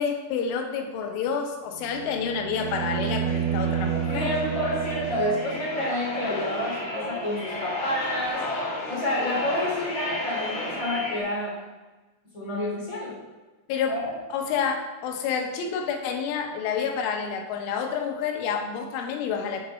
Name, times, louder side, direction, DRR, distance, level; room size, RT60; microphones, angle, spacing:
voice 1, 0.0-4.3 13.7-14.0 14.3-19.7, left 6 dB, 80° left, 4 dB, 3.5 m, -29 dB
sound 1, 1.8-5.9 8.3-8.4, right 9 dB, 85° right, 2.5 m, -30 dB
sound 2, 2.6-11.2, left 1 dB, 40° left, 1.9 m, -34 dB
voice 2, 4.1-8.5 8.9-11.6 12.3-13.2 13.9-14.1, left 1 dB, 20° left, -6 dB, 3.0 m, -29 dB
11.0 x 6.6 x 4.3 m, 1.2 s
omnidirectional pair, 5.6 m